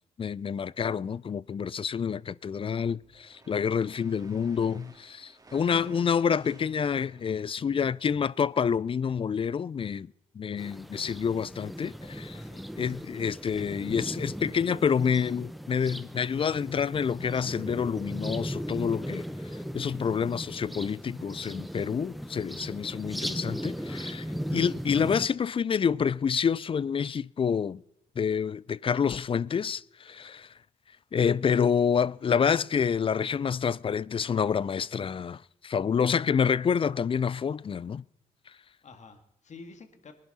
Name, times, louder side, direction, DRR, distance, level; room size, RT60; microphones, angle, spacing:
voice 1, 0.2-10.1 10.4-12.4 12.8-19.2 19.7-24.2 24.5-27.8 28.2-30.5 31.1-38.0, left 7 dB, 40° left, 0.4 m, -28 dB
sound 1, 2.9-8.5, right 2 dB, 25° right, 2.5 m, -55 dB
sound 2, 10.6-25.3, equal, ahead, 0.8 m, -37 dB
voice 2, 12.3-12.7 24.1-24.4 38.8-40.1, left 4 dB, 55° left, 1.9 m, -49 dB
20.0 x 11.0 x 4.2 m
supercardioid pair, 55°, 15 cm